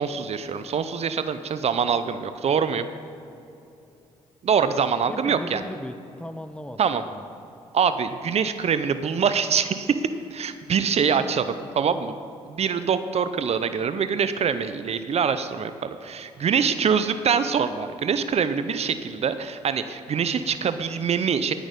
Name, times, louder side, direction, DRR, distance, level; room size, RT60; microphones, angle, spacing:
voice 1, 0.0-2.9 4.4-5.6 6.8-7.0 7.7-9.9 10.3-12.2 12.5-21.5, right 6 dB, 50° right, 11 dB, 0.6 m, -24 dB
voice 2, 5.1-7.2, left 1 dB, 10° left, 11 dB, 0.8 m, -37 dB
17.5 x 6.2 x 5.3 m, 2.7 s
hypercardioid pair, 50°, 14 cm